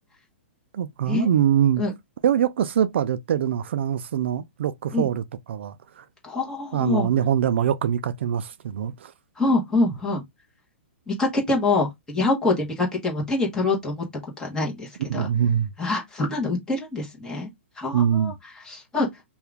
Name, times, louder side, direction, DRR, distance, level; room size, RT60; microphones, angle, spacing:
voice 1, 0.7-1.8 2.2-6.0 6.7-9.1 15.1-15.7 17.9-18.3, right 9 dB, 65° right, 0.4 m, -23 dB
voice 2, 6.2-7.1 9.4-10.2 11.1-14.0 14.4-15.3 15.8-17.5 17.8-19.1, left 2 dB, 10° left, 1.2 m, -25 dB
2.8 x 2.4 x 3.4 m
hypercardioid pair, 155°, 7 cm